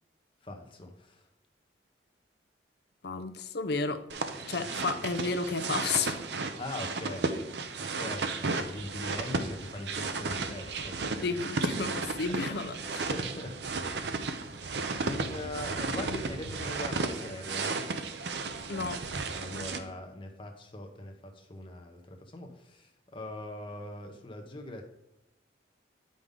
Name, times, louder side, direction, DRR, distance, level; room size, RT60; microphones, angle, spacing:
voice 1, 0.4-1.2 4.5-4.7 6.6-7.3 7.9-11.4 12.4-12.5 13.1-13.6 15.1-17.9 19.4-24.8, left 1 dB, 30° left, 0.8 m, -41 dB
voice 2, 3.0-4.0 4.5-6.2 11.2-13.1 18.7-19.0, left 4 dB, 60° left, 0.6 m, -32 dB
sound 1, 4.1-19.8, right 3 dB, 70° right, 0.7 m, -34 dB
9.4 x 5.3 x 3.7 m
head